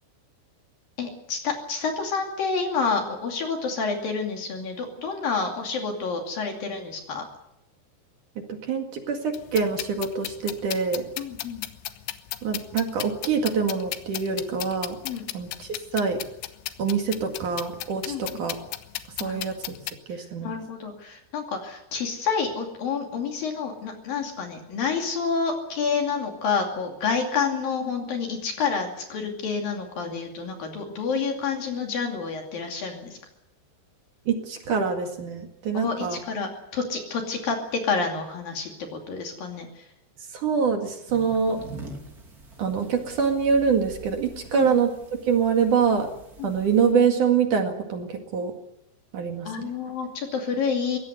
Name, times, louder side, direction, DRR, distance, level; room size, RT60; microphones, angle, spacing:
voice 1, 1.0-7.3 11.2-11.7 15.0-15.3 18.1-18.4 19.2-19.4 20.2-33.2 35.7-39.8 44.5-44.7 46.4-46.5 49.5-51.0, left 5 dB, 55° left, 3 dB, 4.0 m, -29 dB
voice 2, 8.5-11.1 12.4-15.0 15.3-16.2 16.8-18.6 19.2-19.8 20.1-20.5 34.3-36.2 40.3-41.6 42.6-44.9 45.2-46.1 46.4-48.5 49.1-49.7, right 6 dB, 50° right, 4 dB, 2.9 m, -25 dB
sound 1, 9.3-19.9, left 15 dB, 85° left, 3.4 m, -36 dB
sound 2, 41.1-46.9, right 2 dB, 25° right, 2.6 m, -45 dB
22.0 x 18.0 x 8.2 m, 0.85 s
omnidirectional pair, 5.4 m